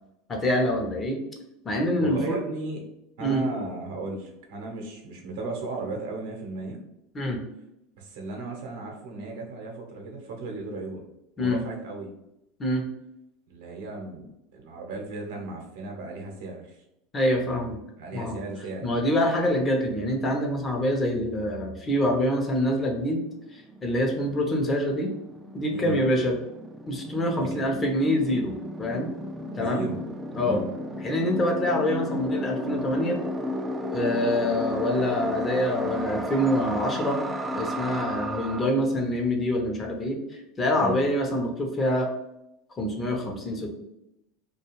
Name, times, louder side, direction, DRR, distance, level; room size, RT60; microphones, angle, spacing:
voice 1, 0.3-1.2 1.6-2.4 3.2-3.4 7.1-7.4 11.4-11.6 12.6-12.9 17.1-17.8 18.1-18.4 18.8-23.2 23.5-25.1 25.5-26.4 26.9-29.1 29.6-29.9 30.3-30.6 31.0-33.2 33.9-37.3 37.5-42.1 42.8-43.7, left 1 dB, 25° left, 2 dB, 0.7 m, -25 dB
voice 2, 2.0-2.8 3.2-6.8 8.0-11.0 11.4-12.1 13.5-16.8 18.0-19.1 25.7-26.0 27.4-27.6 29.6-30.0 30.4-30.7 40.8-41.0, right 2 dB, 75° right, 1 dB, 0.8 m, -35 dB
sound 1, 23.2-23.3 23.4-38.7, equal, 15° right, 0.4 m, -33 dB
2.4 x 2.3 x 3.0 m, 0.84 s
hypercardioid pair, 95°, 0 cm